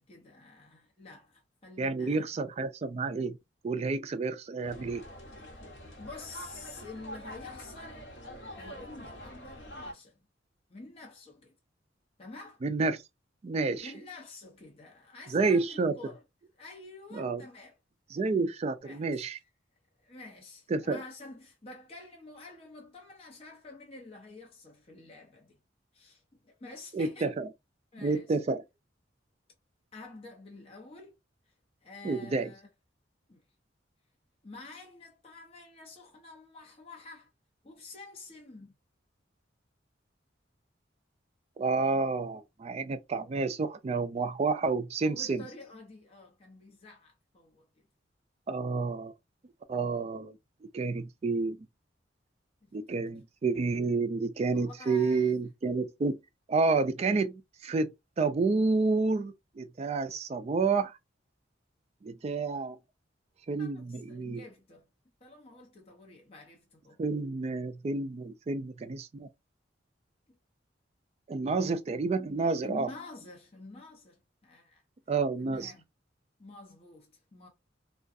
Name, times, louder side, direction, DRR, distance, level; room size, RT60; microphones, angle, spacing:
voice 1, 0.0-2.3 6.0-8.1 8.6-10.2 10.7-11.5 12.2-12.6 13.8-16.2 16.6-17.8 18.8-19.3 20.0-25.6 25.9-27.4 27.9-28.3 29.9-31.2 31.8-32.7 33.3-33.4 34.4-37.3 37.6-38.7 45.0-47.7 52.6-53.2 54.5-55.3 63.6-64.9 65.2-67.0 71.7-71.8 72.6-74.8 75.4-75.9 76.4-77.5, left 3 dB, 30° left, 0.7 m, -49 dB
voice 2, 1.8-3.4 3.6-5.0 12.6-13.0 13.4-13.9 15.3-16.0 17.1-17.4 18.1-19.4 20.7-21.0 26.9-27.5 28.0-28.6 32.0-32.5 41.6-45.4 48.5-49.1 49.7-50.4 50.7-51.6 52.7-56.2 56.5-60.9 62.0-62.8 63.5-64.4 67.0-69.3 71.3-72.9 75.1-75.7, right 4 dB, 35° right, 0.3 m, -29 dB
sound 1, 4.6-9.9, equal, 65° left, 0.9 m, -45 dB
2.4 x 2.3 x 2.4 m
head